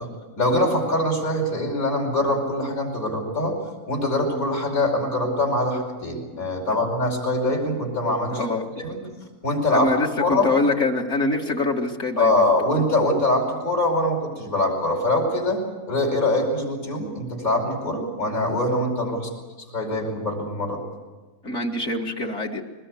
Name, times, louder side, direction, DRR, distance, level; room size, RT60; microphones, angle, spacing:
voice 1, 0.4-3.6 3.9-8.4 8.8-9.0 9.4-9.9 10.2-10.5 12.2-19.3 19.7-20.8, left 1 dB, 70° left, 0 dB, 5.5 m, -23 dB
voice 2, 8.3-8.7 9.7-12.5 21.4-22.6, left 3 dB, 55° left, 0 dB, 2.1 m, -24 dB
21.5 x 21.0 x 8.4 m, 1.3 s
omnidirectional pair, 1.6 m